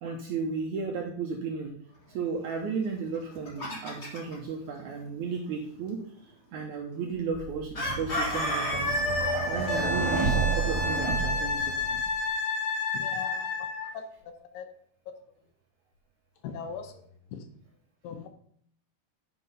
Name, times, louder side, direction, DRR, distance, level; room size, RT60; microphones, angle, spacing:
voice 1, 0.0-1.7 2.1-9.0 9.5-11.7, right 5 dB, 75° right, 2 dB, 1.8 m, -34 dB
Chicken rooster, 3.1-4.3 7.7-9.9, left 1 dB, 35° left, 1.1 m, -30 dB
sound 1, 7.3-12.3, right 6 dB, 60° right, 1.2 m, -31 dB
Wind instrument woodwind instrument, 9.7-13.9 16.6-16.7, left 4 dB, 65° left, 2.6 m, -30 dB
voice 2, 12.9-13.5 13.9-14.0 14.4-14.7 16.4-16.9 17.3-17.5 18.0-18.3, left 7 dB, 85° left, 7 dB, 3.1 m, -38 dB
10.0 x 4.9 x 5.5 m, 0.63 s
omnidirectional pair, 4.5 m